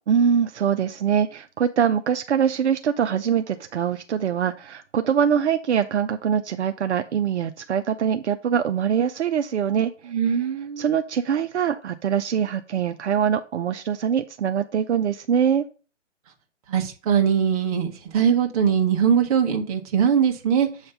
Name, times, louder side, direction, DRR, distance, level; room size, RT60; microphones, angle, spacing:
voice 1, 0.1-10.2 10.8-15.6, right 8 dB, 65° right, 8 dB, 0.7 m, -23 dB
voice 2, 10.1-10.9 16.7-20.7, right 8 dB, 30° right, 3 dB, 1.3 m, -21 dB
8.0 x 3.3 x 5.4 m, 0.35 s
hypercardioid pair, 150°, 36 cm